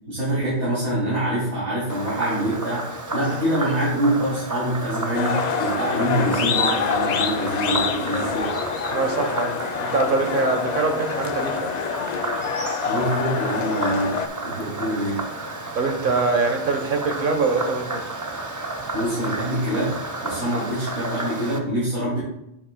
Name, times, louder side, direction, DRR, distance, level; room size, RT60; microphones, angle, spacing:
voice 1, 0.1-8.5 12.8-15.2 18.9-19.9 20.2-22.2, right 1 dB, 70° right, -9 dB, 3.0 m, -25 dB
Frog, 1.9-21.6, right 2 dB, 20° right, 0.5 m, -32 dB
sound 1, 5.1-14.3, left 7 dB, 60° left, 0.4 m, -26 dB
voice 2, 8.9-11.7 15.7-18.0, right 3 dB, 50° right, 4 dB, 1.3 m, -23 dB
10.0 x 6.5 x 2.3 m, 0.82 s
omnidirectional pair, 1.2 m